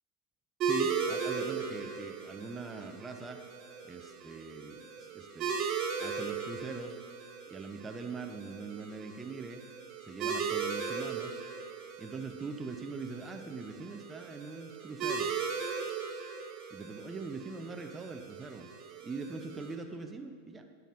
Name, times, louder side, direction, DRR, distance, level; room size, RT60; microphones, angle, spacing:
voice 1, 0.6-3.4 3.8-5.6 6.0-7.0 7.5-9.6 10.0-11.3 12.0-15.4 16.7-18.7 19.0-20.7, right 4 dB, 15° right, 5 dB, 0.6 m, -42 dB
sound 1, 0.6-19.7, right 6 dB, 35° right, 1.5 m, -38 dB
15.5 x 9.1 x 2.5 m, 2.1 s
figure-of-eight pair, 90°, 0 cm